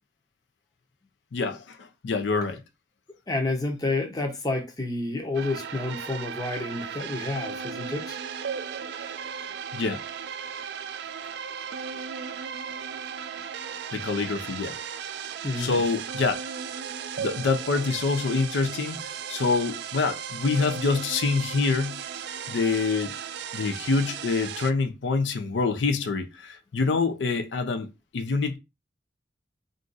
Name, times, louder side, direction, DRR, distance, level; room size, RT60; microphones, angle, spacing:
voice 1, 1.3-2.6 9.7-10.0 13.9-14.8 15.6-16.4 17.2-22.0 22.5-23.2 23.5-27.9 28.1-28.6, left 4 dB, 80° left, 0.4 m, -26 dB
voice 2, 3.3-8.2 15.4-15.8, left 2 dB, 20° left, 0.6 m, -29 dB
sound 1, 5.3-24.7, right 7 dB, 65° right, 0.3 m, -36 dB
2.5 x 2.3 x 3.8 m
head